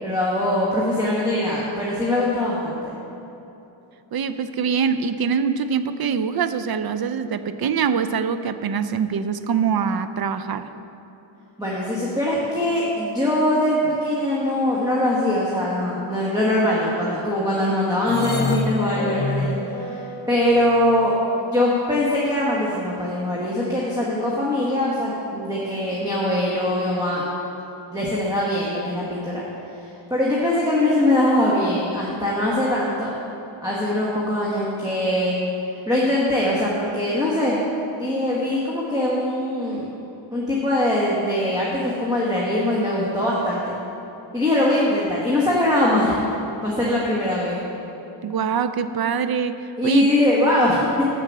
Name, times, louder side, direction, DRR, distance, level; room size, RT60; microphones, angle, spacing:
voice 1, 0.0-2.9 11.6-21.1 21.4-27.3 27.9-29.4 30.1-33.1 33.6-35.4 35.9-37.6 37.9-39.8 40.3-43.7 44.3-46.2 46.6-47.6 49.8-51.0, left 1 dB, 10° right, -6 dB, 1.2 m, -22 dB
voice 2, 4.1-10.7 48.2-49.6 49.8-50.1, right 6 dB, 50° right, 11 dB, 0.5 m, -24 dB
sound 1, 18.1-21.1, left 3 dB, 25° left, 0.4 m, -28 dB
7.4 x 6.7 x 7.3 m, 3.0 s
wide cardioid pair, 120°, 50 cm